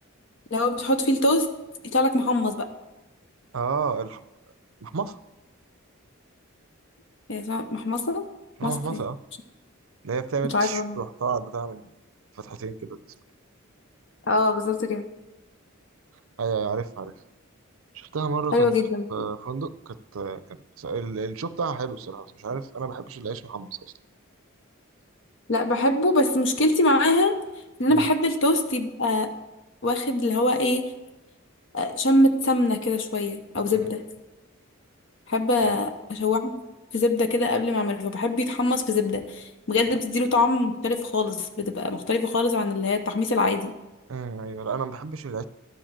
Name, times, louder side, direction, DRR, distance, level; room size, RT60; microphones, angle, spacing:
voice 1, 0.5-1.5 1.9-2.7 7.3-8.3 8.6-9.0 10.5-11.0 14.3-15.0 18.5-19.1 25.5-27.3 27.8-29.3 29.8-30.9 31.7-34.0 35.3-36.6 36.9-43.7, left 2 dB, 60° left, 7 dB, 0.8 m, -23 dB
voice 2, 3.5-4.2 4.8-5.2 8.6-9.2 10.0-11.9 12.4-13.0 16.4-17.1 17.9-18.7 19.1-23.9 27.9-28.1 33.8-34.0 35.6-35.8 44.1-45.4, right 5 dB, 75° right, 14 dB, 0.5 m, -31 dB
11.5 x 5.0 x 7.4 m, 1.0 s
head